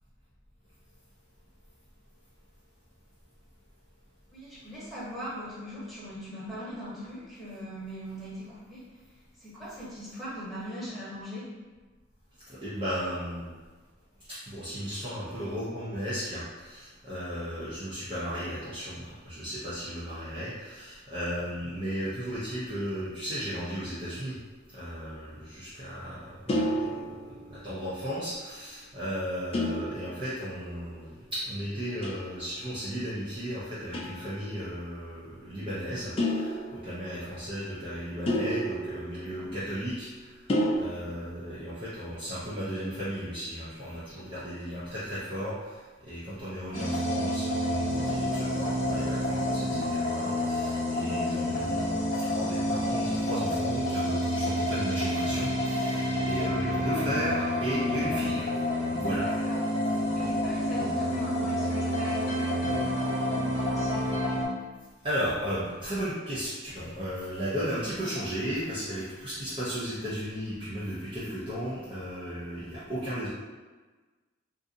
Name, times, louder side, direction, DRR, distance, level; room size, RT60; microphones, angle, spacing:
voice 1, 4.3-8.8 9.4-11.5 37.1-37.2 39.1-39.5 40.6-40.9 51.3-51.7 56.1-56.3 59.2-59.6 59.9-64.0, equal, ahead, -11 dB, 1.2 m, -40 dB
voice 2, 12.6-13.5 14.5-19.0 19.2-24.3 24.7-26.2 26.5-26.9 27.6-36.6 36.8-40.1 40.8-45.5 46.1-58.4 59.0-59.2 65.0-73.3, equal, 25° right, -11 dB, 0.6 m, -35 dB
sound 1, 26.5-27.8 29.5-30.7 32.0-32.5 33.9-34.4 36.2-37.3 38.3-39.9 40.5-40.8, equal, 30° left, 0.3 m, -31 dB
sound 2, 46.7-64.4, left 1 dB, 45° left, 1.0 m, -29 dB
3.8 x 2.6 x 2.6 m, 1.3 s
head